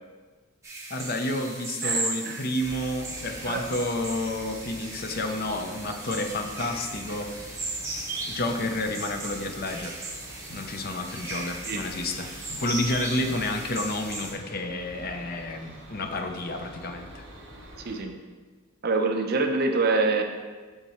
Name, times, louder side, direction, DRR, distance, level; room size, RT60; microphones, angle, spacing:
sound 1, 0.6-14.3, right 2 dB, 15° right, 1.0 m, -36 dB
voice 1, 0.9-7.4 8.3-10.0 10.5-17.2, left 1 dB, 45° left, 5 dB, 0.6 m, -30 dB
voice 2, 1.8-2.4 3.5-3.6 11.7-11.8 17.8-18.2 18.8-20.2, right 3 dB, 45° right, 4 dB, 0.6 m, -25 dB
sound 2, 2.6-18.0, right 1 dB, 65° right, 1.2 m, -46 dB
7.1 x 6.7 x 3.0 m, 1.4 s
head